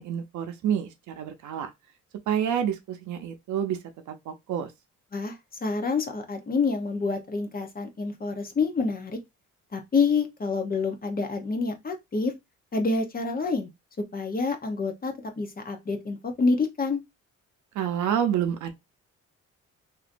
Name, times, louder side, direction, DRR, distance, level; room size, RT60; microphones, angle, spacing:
voice 1, 0.0-1.7 2.3-3.8 4.1-4.7 17.7-18.7, right 9 dB, 75° right, 0.7 m, -28 dB
voice 2, 5.1-9.2 9.7-12.3 12.7-13.7 14.1-17.0, left 4 dB, 30° left, 0.9 m, -27 dB
2.9 x 2.6 x 2.6 m
cardioid pair, 90°, 30 cm